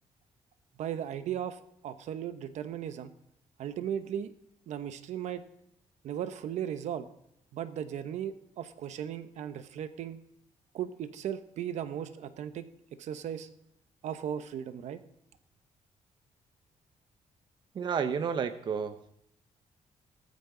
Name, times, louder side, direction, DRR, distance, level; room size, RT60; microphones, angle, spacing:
voice 1, 0.8-3.1 3.6-4.3 4.7-5.4 6.0-7.1 7.5-10.2 10.7-12.7 13.0-13.5 14.0-15.0, right 9 dB, 70° right, 11 dB, 1.0 m, -36 dB
voice 2, 17.7-19.1, right 6 dB, 35° right, 9 dB, 0.8 m, -31 dB
18.0 x 14.0 x 3.9 m, 0.77 s
cardioid pair, 175°, 12 cm